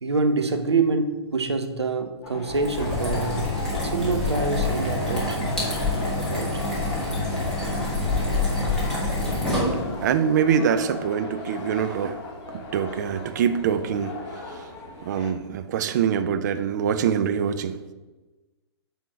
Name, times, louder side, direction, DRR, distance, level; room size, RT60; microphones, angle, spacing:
voice 1, 0.0-3.4 3.8-5.6 6.3-6.6, right 4 dB, 75° right, 6 dB, 0.9 m, -26 dB
sound 1, 2.2-15.3, left 2 dB, 30° left, 1.2 m, -37 dB
sound 2, 2.5-10.1, left 2 dB, 5° left, 2.4 m, -26 dB
voice 2, 10.0-12.1 12.5-14.1 15.0-17.8, right 8 dB, 40° right, 9 dB, 0.6 m, -24 dB
9.0 x 3.6 x 5.8 m, 1.2 s
figure-of-eight pair, 120°, 14 cm